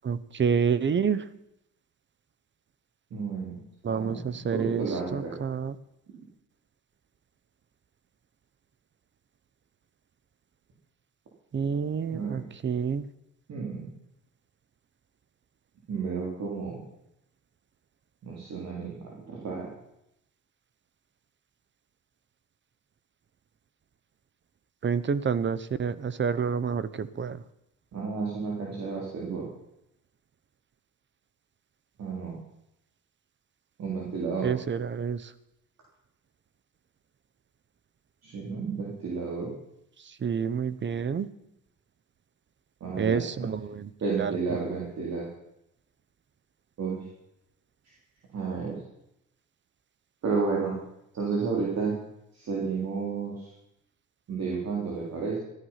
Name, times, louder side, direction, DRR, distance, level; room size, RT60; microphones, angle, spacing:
voice 1, 0.0-1.2 3.8-5.8 11.5-13.0 24.8-27.4 34.4-35.3 40.2-41.3 43.0-43.9 44.2-44.3, right 6 dB, 40° right, 16 dB, 0.9 m, -28 dB
voice 2, 3.1-3.6 3.9-4.2 4.5-5.4 12.1-12.4 13.5-13.9 15.9-16.8 18.2-19.7 27.9-29.4 32.0-32.4 33.8-34.5 38.2-39.5 42.8-43.2 44.0-45.3 46.8-47.0 48.3-48.8 50.2-50.7 51.1-52.0 52.4-53.3 54.3-55.4, right 5 dB, 60° right, -3 dB, 3.8 m, -31 dB
14.0 x 13.0 x 5.8 m, 0.84 s
cardioid pair, 90°, 30 cm